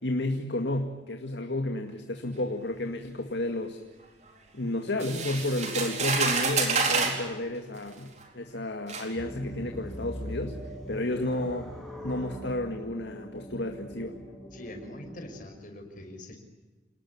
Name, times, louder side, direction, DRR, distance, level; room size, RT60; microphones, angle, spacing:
voice 1, 0.0-3.8 4.5-10.6 10.9-11.7 12.0-14.2, left 1 dB, 70° left, 5 dB, 2.1 m, -31 dB
sound 1, 5.0-7.2 8.2-8.3 8.9-9.1, right 4 dB, 40° right, 4.2 m, -27 dB
sound 2, 9.2-15.4, equal, ahead, 7.1 m, -42 dB
voice 2, 14.5-16.4, left 1 dB, 45° left, 5 dB, 5.7 m, -43 dB
29.0 x 19.5 x 9.7 m, 1.2 s
head